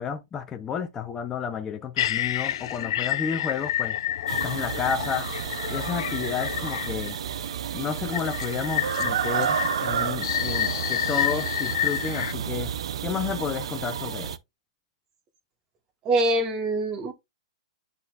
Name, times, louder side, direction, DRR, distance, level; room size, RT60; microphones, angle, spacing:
voice 1, 0.0-4.0 4.4-5.3 5.7-7.2 7.7-12.7 13.0-14.4, left 7 dB, 15° left, 0.6 m, -31 dB
sound 1, 2.0-7.2 8.1-12.3, left 11 dB, 65° left, 0.5 m, -29 dB
sound 2, 4.3-14.4, right 8 dB, 80° right, 0.6 m, -31 dB
voice 2, 16.0-17.1, right 1 dB, 25° right, 1.4 m, -24 dB
10.5 x 4.1 x 2.4 m
hypercardioid pair, 150°, 3 cm